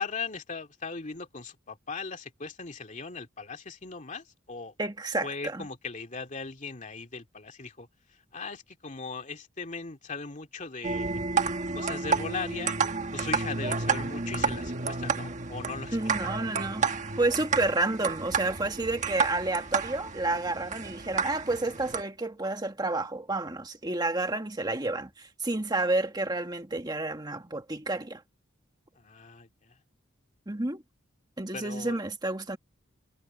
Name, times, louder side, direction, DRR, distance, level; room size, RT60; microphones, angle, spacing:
voice 1, 0.0-4.7 5.2-11.2 11.7-12.8 13.1-17.0 28.9-29.8 31.5-32.0, left 4 dB, 40° left, 2.4 m, -39 dB
voice 2, 4.8-5.6 15.9-16.9 17.2-28.2 30.5-30.8 31.4-32.6, right 2 dB, 20° right, 1.7 m, -30 dB
sound 1, 10.8-22.0, right 5 dB, 40° right, 1.4 m, -31 dB
head